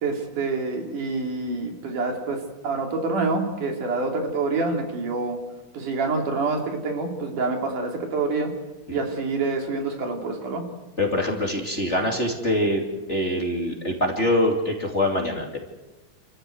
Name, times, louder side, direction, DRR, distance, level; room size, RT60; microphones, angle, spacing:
voice 1, 0.0-5.4 5.7-8.5 8.9-10.6, right 3 dB, 75° right, 2 dB, 4.3 m, -27 dB
voice 2, 11.0-12.8 13.1-15.6, left 1 dB, 25° left, 1 dB, 2.6 m, -24 dB
28.5 x 14.0 x 8.0 m, 1.1 s
omnidirectional pair, 3.6 m